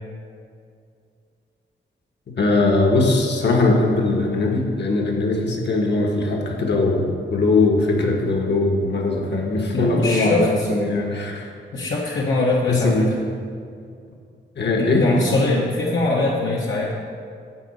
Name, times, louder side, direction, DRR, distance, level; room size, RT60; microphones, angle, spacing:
voice 1, 2.4-11.5 12.0-12.2 12.7-13.1 14.6-15.1, left 2 dB, 60° left, 1 dB, 1.5 m, -20 dB
voice 2, 9.7-10.7 11.7-13.1 14.8-16.9, left 2 dB, 75° left, -4 dB, 1.2 m, -22 dB
10.5 x 4.0 x 7.7 m, 2.3 s
wide cardioid pair, 120°, 20 cm